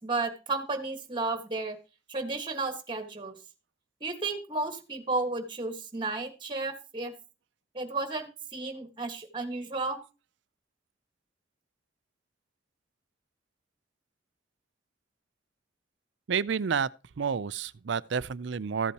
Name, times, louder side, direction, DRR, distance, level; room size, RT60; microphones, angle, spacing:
voice 1, 0.0-1.8 2.1-3.3 4.0-7.1 7.7-10.0, right 3 dB, 25° right, 1.5 m, -33 dB
voice 2, 16.3-16.9 17.2-18.9, right 6 dB, 70° right, 0.5 m, -29 dB
14.5 x 8.4 x 2.9 m
head